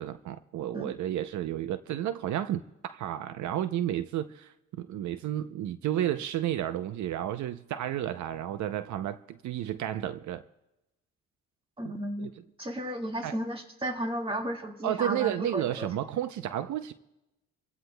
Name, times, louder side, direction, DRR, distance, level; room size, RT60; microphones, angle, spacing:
voice 1, 0.0-10.4 11.8-11.9 12.2-12.4 13.2-13.4 14.8-16.9, right 11 dB, 70° right, 0.6 m, -32 dB
voice 2, 11.8-12.3 12.6-15.9, equal, 20° right, 1.9 m, -34 dB
28.0 x 16.0 x 2.2 m
cardioid pair, 90°, 30 cm